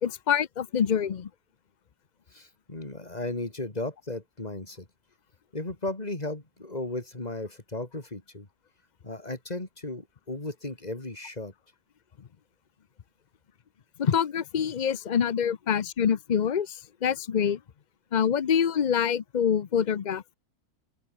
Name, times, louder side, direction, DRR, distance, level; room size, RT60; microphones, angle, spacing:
voice 1, 0.0-1.3 14.0-17.6 18.1-20.3, left 8 dB, 50° left, 0.5 m, -26 dB
voice 2, 2.3-4.9 5.5-8.5 9.0-11.5, left 2 dB, 25° left, 3.3 m, -35 dB
open air
omnidirectional pair, 1.6 m